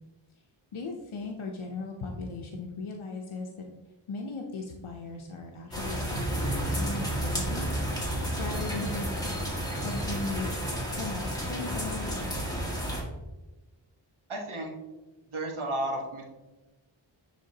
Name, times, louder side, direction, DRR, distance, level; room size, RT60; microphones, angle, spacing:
voice 1, 0.7-3.7 4.1-7.7 8.4-9.4 9.8-10.5 10.9-12.2, left 3 dB, 85° left, 1 dB, 0.7 m, -37 dB
sound 1, 5.7-13.0, equal, 10° left, 1.8 m, -31 dB
voice 2, 14.3-14.7 15.3-16.2, right 1 dB, 90° right, 1 dB, 1.3 m, -32 dB
10.5 x 3.6 x 2.7 m, 1.1 s
wide cardioid pair, 50°, 47 cm